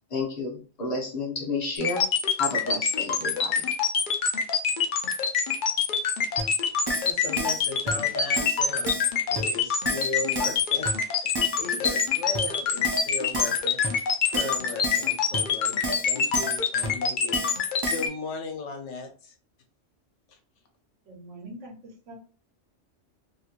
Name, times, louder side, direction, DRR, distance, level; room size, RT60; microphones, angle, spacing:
voice 1, 0.1-2.0 2.4-3.6, left 2 dB, 35° left, -1 dB, 0.9 m, -31 dB
sound 1, 1.8-18.1, left 6 dB, 55° left, 0.6 m, -25 dB
Keyboard (musical), 6.4-6.5 6.9-7.1 7.4-7.6 7.9-8.0 8.4-8.6 8.9-9.1 9.4-9.5 9.9-10.1 10.4-10.6 10.9-11.0 11.4-11.6 11.9-12.1 12.3-12.4 12.8-13.1 13.3-13.6 13.8-13.9 14.3-14.6 14.8-15.1 15.3-15.4 15.8-16.1 16.3-16.6 16.8-16.9 17.3-17.6 17.8-18.1, right 2 dB, 25° right, 0.6 m, -31 dB
voice 2, 6.6-8.9 9.3-11.3 11.6-19.3 20.3-20.4, left 3 dB, 75° left, 4 dB, 1.1 m, -37 dB
voice 3, 21.1-22.2, right 1 dB, 70° right, 1 dB, 1.2 m, -43 dB
3.0 x 2.9 x 2.4 m, 0.38 s
omnidirectional pair, 1.3 m